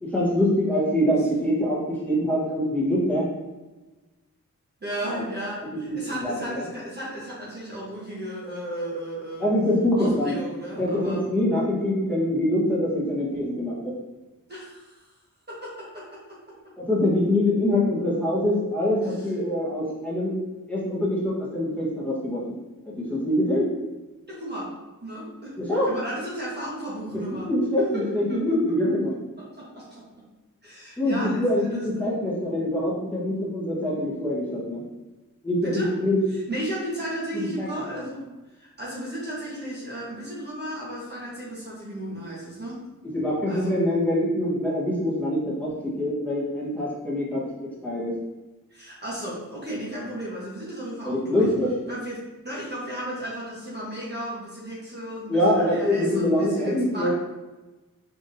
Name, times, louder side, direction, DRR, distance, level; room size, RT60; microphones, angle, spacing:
voice 1, 0.0-3.2 5.1-5.2 5.9-6.6 9.4-10.3 10.8-13.9 16.8-20.3 20.7-22.4 22.8-23.7 25.6-25.9 27.5-29.1 31.0-34.8 35.4-36.2 37.3-38.0 43.1-47.4 47.8-48.1 51.0-51.7 55.3-57.1, left 1 dB, 5° left, -9 dB, 1.5 m, -24 dB
voice 2, 4.8-9.5 10.0-11.2 14.5-15.1 15.5-16.4 19.0-19.2 24.3-24.7 25.0-25.6 25.9-27.5 27.8-28.0 28.3-28.8 29.4-30.2 30.6-32.1 35.6-35.9 36.3-42.8 43.5-43.8 48.7-51.5 51.9-57.1, right 1 dB, 30° right, -7 dB, 1.2 m, -35 dB
5.2 x 3.6 x 2.7 m, 1.1 s
wide cardioid pair, 125°, 34 cm